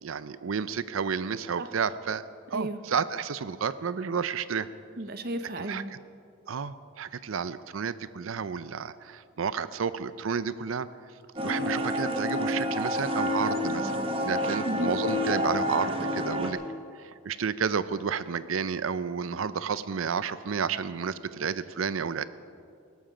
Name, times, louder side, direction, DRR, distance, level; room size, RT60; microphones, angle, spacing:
voice 1, 0.0-4.7 5.6-5.8 6.5-10.9 11.4-13.9 14.2-16.6 17.2-22.2, right 6 dB, 90° right, 15 dB, 0.5 m, -31 dB
voice 2, 5.0-5.9 14.6-14.9, right 1 dB, 50° right, 10 dB, 0.8 m, -33 dB
sound 1, 11.4-16.5, left 1 dB, 25° right, 1.1 m, -29 dB
17.5 x 13.5 x 5.0 m, 2.3 s
head